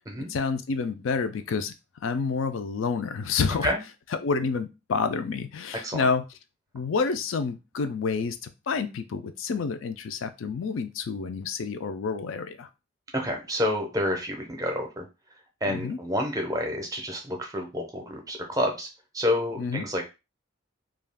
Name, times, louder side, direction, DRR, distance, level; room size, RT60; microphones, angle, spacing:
voice 1, 0.3-1.7 2.0-3.7 4.2-6.2 6.7-12.7 15.7-16.0 19.6-19.8, left 5 dB, 70° left, 10 dB, 0.4 m, -29 dB
voice 2, 13.1-15.1 15.6-18.9 19.1-20.1, left 1 dB, 15° right, 2 dB, 0.6 m, -29 dB
2.4 x 2.3 x 3.4 m, 0.27 s
head